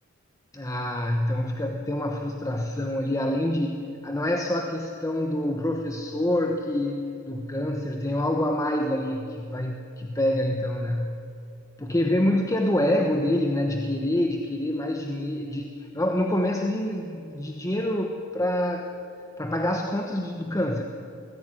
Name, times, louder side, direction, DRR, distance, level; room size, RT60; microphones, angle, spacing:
voice 1, 0.5-11.2 11.8-18.9 19.4-20.8, left 1 dB, 15° left, 3 dB, 1.1 m, -26 dB
20.5 x 15.5 x 9.7 m, 2.6 s
head